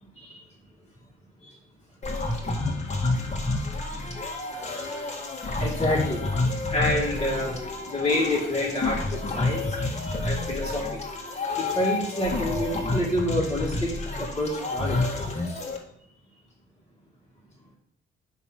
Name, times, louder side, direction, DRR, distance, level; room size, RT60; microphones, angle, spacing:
sound 1, 2.0-15.8, left 2 dB, 35° left, 1.7 m, -29 dB
voice 1, 5.5-6.2 6.7-11.0 11.6-15.1, left 1 dB, 20° left, -8 dB, 2.1 m, -28 dB
9.2 x 3.3 x 6.1 m, 0.69 s
cardioid pair, 90°, 20 cm